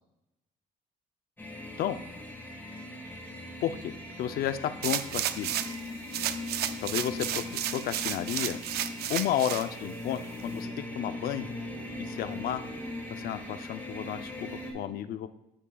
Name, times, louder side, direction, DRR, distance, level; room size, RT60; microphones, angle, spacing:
sound 1, 1.4-14.7, left 1 dB, 10° left, 1.8 m, -40 dB
voice 1, 3.6-5.6 6.8-7.4 7.7-8.6 9.1-11.5 12.0-12.6 13.1-15.3, left 10 dB, 65° left, 11 dB, 0.5 m, -32 dB
sound 2, 4.8-5.8 6.1-9.7 10.2-10.3, right 12 dB, 70° right, 0.5 m, -32 dB
9.8 x 7.4 x 2.3 m, 0.90 s
cardioid pair, 110°, 17 cm